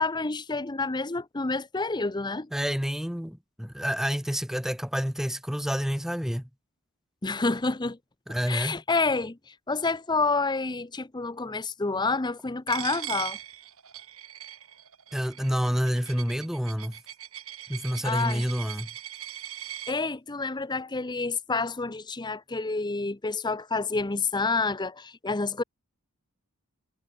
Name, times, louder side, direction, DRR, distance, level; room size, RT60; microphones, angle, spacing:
voice 1, 0.0-2.5 7.2-8.0 8.5-13.4 18.0-18.4 19.9-25.6, left 3 dB, 20° left, 0.7 m, -28 dB
voice 2, 2.5-6.5 8.3-8.8 15.1-17.0 17.7-18.9, equal, ahead, 1.1 m, -28 dB
Coin (dropping), 12.7-19.9, right 11 dB, 70° right, 5.3 m, -40 dB
head